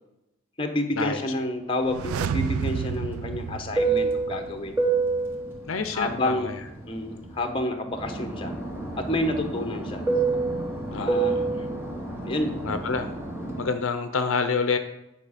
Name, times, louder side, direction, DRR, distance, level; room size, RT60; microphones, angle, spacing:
voice 1, 0.6-4.7 5.9-6.5 6.8-8.5 9.0-10.0 10.9-11.3 12.2-12.5, left 1 dB, 25° left, 5 dB, 1.0 m, -29 dB
sound 1, 1.8-4.7 4.9-5.0, right 7 dB, 85° right, 0.4 m, -31 dB
Fixed-wing aircraft airplane, 2.2-7.5 7.9-13.7, right 3 dB, 10° right, 1.2 m, -28 dB
voice 2, 5.7-6.6 10.9-11.5 12.6-13.1 13.6-14.8, left 5 dB, 65° left, 8 dB, 0.6 m, -27 dB
9.3 x 5.1 x 5.0 m, 0.91 s
head